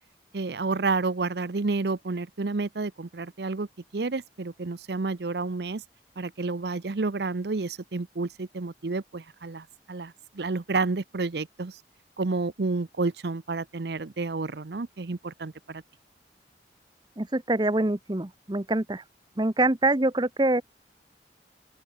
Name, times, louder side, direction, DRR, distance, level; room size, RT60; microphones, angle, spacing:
voice 1, 0.3-3.7 3.9-5.8 6.2-11.8 12.2-15.8, right 3 dB, 70° right, 0.7 m, -30 dB
voice 2, 17.2-19.0 19.4-20.6, right 2 dB, 25° right, 0.9 m, -25 dB
open air
head